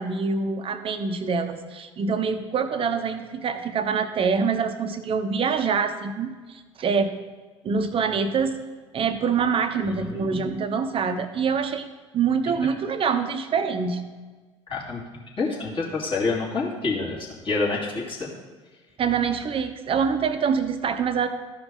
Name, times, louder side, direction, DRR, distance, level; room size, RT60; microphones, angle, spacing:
voice 1, 0.0-7.2 7.6-8.6 8.9-11.9 12.1-14.0 19.0-21.3, right 5 dB, 35° right, 9 dB, 0.9 m, -25 dB
voice 2, 9.8-10.4 12.4-12.5 14.7-15.0 15.4-18.3, left 3 dB, 30° left, -4 dB, 2.7 m, -28 dB
14.0 x 4.9 x 3.8 m, 1.3 s
figure-of-eight pair, 65°, 16 cm